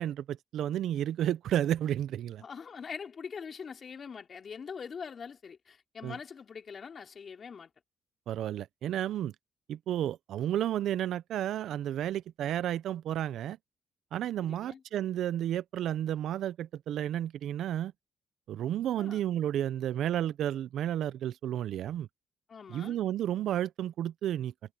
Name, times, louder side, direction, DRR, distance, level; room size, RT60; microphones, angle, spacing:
voice 1, 0.0-2.4 6.0-6.2 8.3-9.3 9.7-13.6 14.1-17.9 18.5-22.1 22.7-24.5, right 11 dB, 75° right, 0.5 m, -32 dB
voice 2, 2.4-7.7 14.4-14.8 19.0-19.2 22.5-23.0, left 6 dB, 45° left, 4.5 m, -43 dB
cardioid pair, 90°, 0 cm